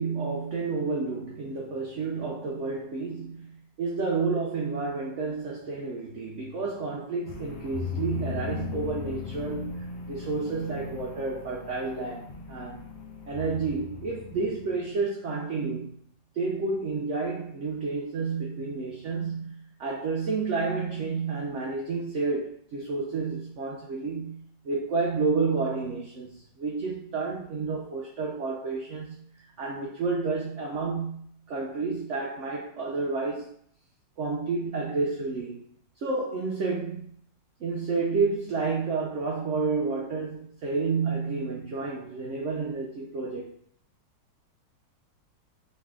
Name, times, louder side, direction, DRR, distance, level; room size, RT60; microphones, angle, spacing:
voice 1, 0.0-3.5 3.8-12.8 13.3-15.9 16.3-33.5 34.2-35.6 36.0-37.1 37.6-43.5, right 4 dB, 90° right, -1 dB, 0.6 m, -30 dB
sound 1, 7.2-14.9, left 6 dB, 75° left, 0.6 m, -38 dB
3.3 x 3.1 x 3.5 m, 0.63 s
omnidirectional pair, 1.9 m